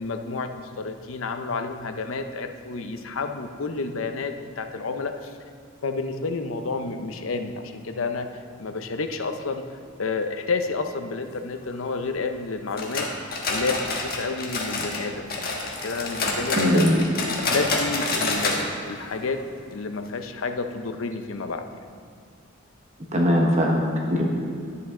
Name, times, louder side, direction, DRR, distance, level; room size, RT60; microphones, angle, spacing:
voice 1, 0.0-5.4 5.8-8.3 8.6-9.6 10.0-17.0 17.4-19.4 19.7-21.6, left 3 dB, 80° left, 7 dB, 0.7 m, -30 dB
sound 1, 12.8-15.0 15.3-18.6 18.9-19.0 19.4-19.5 20.1-20.2, left 3 dB, 45° left, 1.4 m, -27 dB
voice 2, 16.5-17.0 23.1-24.3, equal, 35° right, -1 dB, 1.1 m, -20 dB
11.0 x 8.4 x 3.8 m, 2.4 s
head